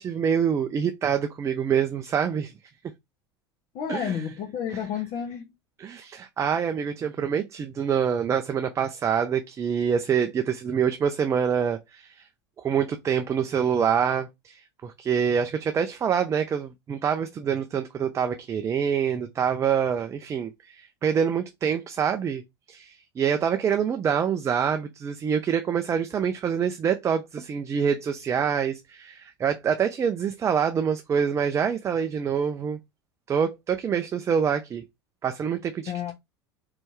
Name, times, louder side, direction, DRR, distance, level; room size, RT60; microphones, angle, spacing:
voice 1, 0.0-2.5 3.9-4.2 4.7-4.8 5.8-12.3 12.6-22.4 22.7-32.8 33.3-34.8 35.2-36.1, right 7 dB, 20° right, 0.5 m, -26 dB
voice 2, 3.7-5.5 35.9-36.1, left 8 dB, 45° left, 1.5 m, -31 dB
4.3 x 3.3 x 3.2 m
figure-of-eight pair, 80°, 14 cm